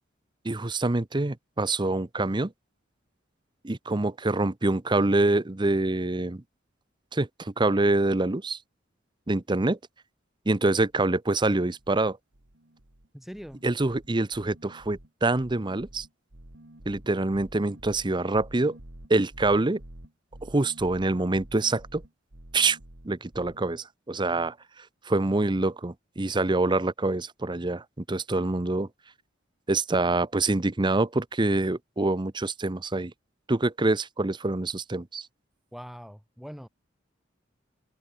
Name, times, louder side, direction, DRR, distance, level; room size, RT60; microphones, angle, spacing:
voice 1, 0.4-2.5 3.6-6.4 7.1-8.6 9.3-9.8 10.5-12.2 13.6-16.1 16.9-18.8 19.1-19.8 20.4-22.0 22.5-22.8 23.1-24.5 25.0-28.9 29.7-33.1 33.5-35.3, right 2 dB, 25° right, 0.8 m, -25 dB
sound 1, 10.8-11.0 11.3-12.1 12.3-13.1 13.3-23.6, right 1 dB, 70° right, 2.6 m, -49 dB
voice 2, 13.1-13.6 35.7-36.7, equal, ahead, 7.3 m, -42 dB
head